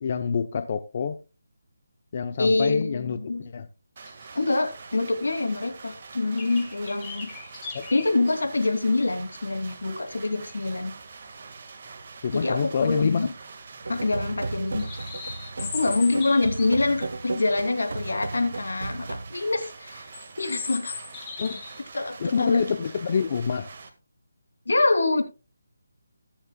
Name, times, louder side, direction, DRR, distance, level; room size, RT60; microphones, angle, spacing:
voice 1, 0.0-1.2 2.1-3.7 7.7-7.9 12.2-13.3 21.4-21.6 22.2-23.7, left 6 dB, 35° left, 0.7 m, -27 dB
voice 2, 2.4-3.4 4.3-7.3 7.9-10.9 12.3-13.3 13.9-14.9 15.6-20.1 20.4-21.0 21.9-22.6 24.7-25.2, left 2 dB, 85° left, 2.8 m, -25 dB
sound 1, 4.0-4.7 5.1-5.2 5.6-5.7 6.4-8.1 8.7-8.8 10.0-10.6 12.1-12.3 12.6-12.7 13.0-13.5 14.0-16.7 17.7-17.9 18.2-18.9 19.4-19.5 20.1-21.8 22.1-22.4, left 5 dB, 15° left, 1.6 m, -39 dB
sound 2, 4.0-23.9, right 4 dB, 40° right, 1.7 m, -45 dB
sound 3, 13.8-19.3, right 3 dB, 70° right, 0.9 m, -35 dB
20.5 x 7.3 x 2.3 m
hypercardioid pair, 170°, 0 cm